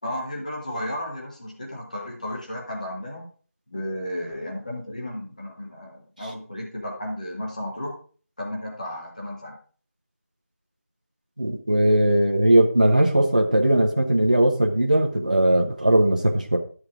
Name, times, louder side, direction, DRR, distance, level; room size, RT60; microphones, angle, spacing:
voice 1, 0.0-3.3 3.7-7.9 8.4-9.6, left 1 dB, 25° left, -1 dB, 2.2 m, -33 dB
voice 2, 11.4-16.6, right 1 dB, 30° right, 2 dB, 0.9 m, -19 dB
12.5 x 6.4 x 3.6 m, 0.41 s
figure-of-eight pair, 175°, 9 cm